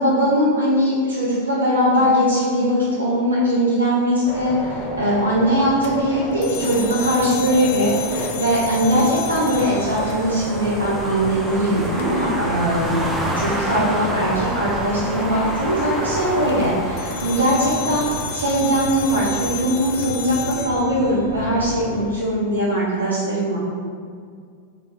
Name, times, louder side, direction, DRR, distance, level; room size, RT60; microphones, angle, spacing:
voice 1, 0.0-13.0 13.3-23.6, equal, 80° right, -9 dB, 0.7 m, -20 dB
sound 1, 4.3-22.1, left 1 dB, 25° left, 0.8 m, -32 dB
sound 2, 5.8-10.8 11.9-12.4 16.3-21.8, left 7 dB, 50° left, 0.3 m, -33 dB
sound 3, 9.3-20.0, right 1 dB, 5° right, 0.5 m, -29 dB
4.1 x 2.3 x 4.3 m, 2.1 s
figure-of-eight pair, 90°, 0 cm